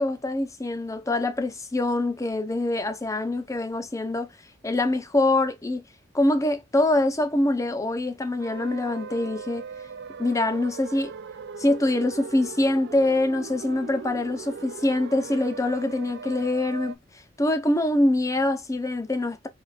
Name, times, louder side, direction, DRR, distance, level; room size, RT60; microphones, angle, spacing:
voice 1, 0.0-4.3 4.6-5.8 6.1-9.7 10.2-11.1 11.6-17.0 17.4-19.5, left 2 dB, 15° left, 0.6 m, -24 dB
sound 1, 8.4-16.9, right 5 dB, 60° right, 0.4 m, -39 dB
4.7 x 2.4 x 2.3 m
head